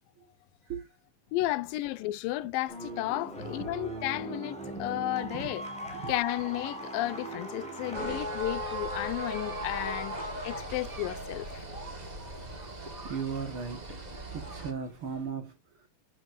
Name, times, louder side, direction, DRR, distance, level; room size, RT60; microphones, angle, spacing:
voice 1, 1.3-5.6 6.1-11.7, left 16 dB, 90° left, 2.4 m, -33 dB
sound 1, 2.7-8.2, right 1 dB, ahead, 4.2 m, -39 dB
sound 2, 7.9-14.7, right 1 dB, 80° right, 0.3 m, -38 dB
sound 3, 8.3-15.3, right 3 dB, 20° right, 2.3 m, -50 dB
voice 2, 13.0-14.0 14.3-15.9, right 6 dB, 50° right, 2.0 m, -37 dB
11.5 x 9.2 x 2.6 m
omnidirectional pair, 3.9 m